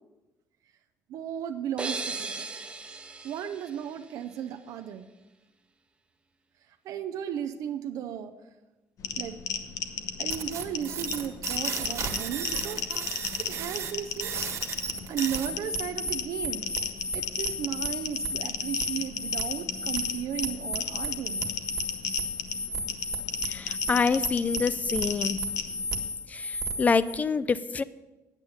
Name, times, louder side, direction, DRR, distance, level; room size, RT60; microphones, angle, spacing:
voice 1, 1.1-2.5 3.2-5.1 6.6-8.5 9.2-9.4 10.2-12.9 13.4-14.4 15.1-16.7 17.1-21.5, right 9 dB, 75° right, 7 dB, 0.6 m, -35 dB
sound 1, 1.8-4.5, right 3 dB, 15° right, 0.6 m, -37 dB
sound 2, 9.0-26.1, left 7 dB, 65° left, 0.9 m, -34 dB
sound 3, 10.3-27.2, right 1 dB, 55° right, 1.5 m, -34 dB
voice 2, 23.5-25.4 26.3-27.8, left 5 dB, 25° left, 17 dB, 0.4 m, -26 dB
8.9 x 8.5 x 5.6 m, 1.1 s
cardioid pair, 130°, 6 cm